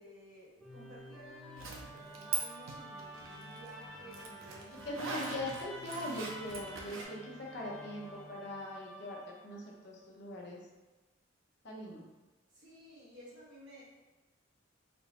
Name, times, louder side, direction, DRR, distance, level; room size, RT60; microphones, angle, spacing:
voice 1, 0.0-5.0 12.5-13.8, equal, 60° right, -6 dB, 1.1 m, -54 dB
Musical instrument, 0.6-9.8, equal, ahead, 0.4 m, -49 dB
Zipper (clothing), 1.6-2.4 2.7-7.0, right 4 dB, 85° right, 0.6 m, -41 dB
voice 2, 4.8-10.6 11.6-12.0, left 1 dB, 55° left, -3 dB, 0.7 m, -41 dB
4.3 x 2.1 x 2.8 m, 1.1 s
head